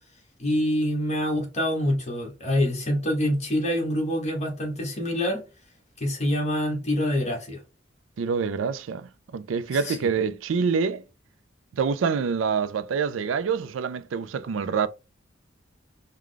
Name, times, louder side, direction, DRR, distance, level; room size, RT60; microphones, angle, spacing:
voice 1, 0.4-5.4 6.0-7.6 9.9-10.0, equal, 35° left, 1.3 m, -26 dB
voice 2, 8.2-11.0 11.7-14.9, right 6 dB, 75° right, 0.4 m, -26 dB
4.7 x 2.2 x 3.8 m
head